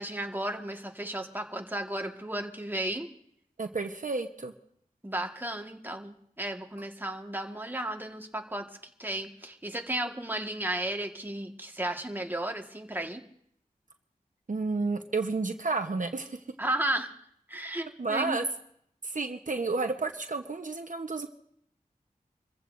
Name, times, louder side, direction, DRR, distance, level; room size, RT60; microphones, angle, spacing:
voice 1, 0.0-3.1 5.0-8.6 9.0-13.2 16.6-17.1 17.5-18.4, right 1 dB, 15° right, 3 dB, 1.5 m, -34 dB
voice 2, 3.6-4.5 14.5-16.4 18.0-18.4 19.0-21.3, right 3 dB, 60° right, 6 dB, 0.9 m, -31 dB
28.0 x 15.0 x 2.6 m, 0.69 s
wide cardioid pair, 70°, 15 cm